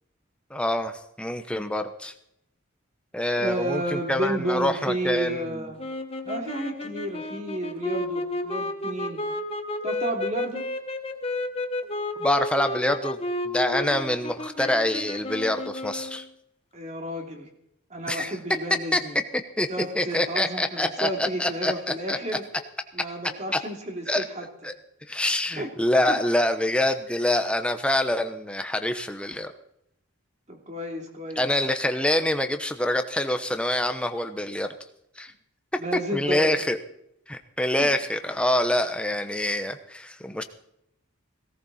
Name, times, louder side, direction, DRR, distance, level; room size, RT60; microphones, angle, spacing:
voice 1, 0.5-2.1 3.1-5.7 12.2-13.2 13.4-16.2 18.1-18.4 18.9-19.0 19.6-19.7 19.9-22.2 23.5-23.6 24.1-24.2 24.6-24.7 25.1-29.5 31.4-34.7 35.2-35.3 35.7-36.8 37.3-40.4, left 1 dB, 5° left, 7 dB, 0.9 m, -26 dB
voice 2, 3.4-5.8 6.2-9.2 9.8-10.6 16.7-17.5 17.9-19.2 19.7-22.4 22.9-24.5 25.6-25.7 26.1-26.2 30.5-31.5 35.8-36.6 37.8-37.9, right 1 dB, 30° right, 2 dB, 3.0 m, -31 dB
sound 1, 5.8-16.3, left 2 dB, 25° left, 1.2 m, -32 dB
17.5 x 17.5 x 4.3 m, 0.77 s
head